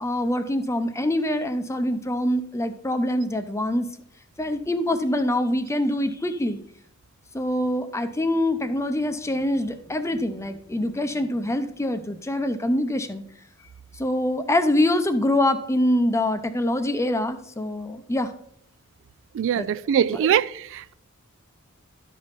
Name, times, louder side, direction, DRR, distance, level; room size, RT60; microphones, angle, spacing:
voice 1, 0.0-3.9 4.4-6.6 7.3-13.2 14.0-18.3 19.5-19.7, left 1 dB, 15° left, 0.7 m, -24 dB
voice 2, 19.3-20.9, right 9 dB, 60° right, 0.3 m, -23 dB
12.5 x 5.3 x 4.1 m
head